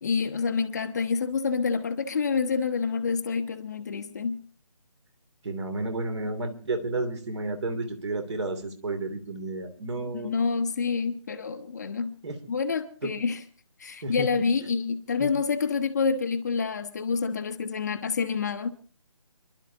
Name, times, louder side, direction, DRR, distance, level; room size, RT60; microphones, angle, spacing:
voice 1, 0.0-4.4 10.1-12.2 12.5-13.4 13.8-18.7, left 5 dB, 30° left, 0.8 m, -28 dB
voice 2, 5.4-10.3 12.2-12.4 14.0-14.3 15.2-15.3, right 2 dB, 50° right, 2.9 m, -31 dB
29.0 x 11.5 x 2.8 m
figure-of-eight pair, 160°, 19 cm